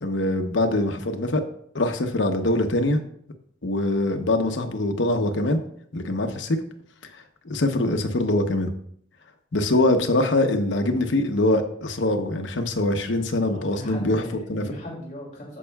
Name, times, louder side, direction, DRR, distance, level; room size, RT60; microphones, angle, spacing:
voice 1, 0.0-1.4 1.7-3.0 3.6-5.6 5.9-6.6 7.4-8.7 9.5-14.2 14.5-14.6, left 2 dB, 75° left, 6 dB, 0.9 m, -23 dB
voice 2, 13.4-15.6, left 1 dB, 40° left, -5 dB, 2.7 m, -38 dB
15.5 x 5.5 x 2.3 m, 0.65 s
head